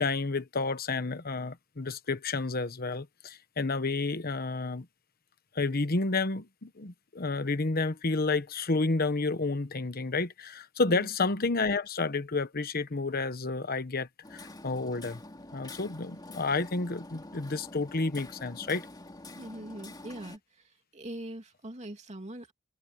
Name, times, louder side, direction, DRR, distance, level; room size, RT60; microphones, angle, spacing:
voice 1, 0.0-4.8 5.5-15.2 15.5-18.9, left 3 dB, 50° left, 1.1 m, -30 dB
Hammer, 14.2-20.4, left 2 dB, 20° left, 3.2 m, -47 dB
voice 2, 19.4-20.4 20.9-22.5, right 1 dB, 35° right, 2.9 m, -41 dB
open air
head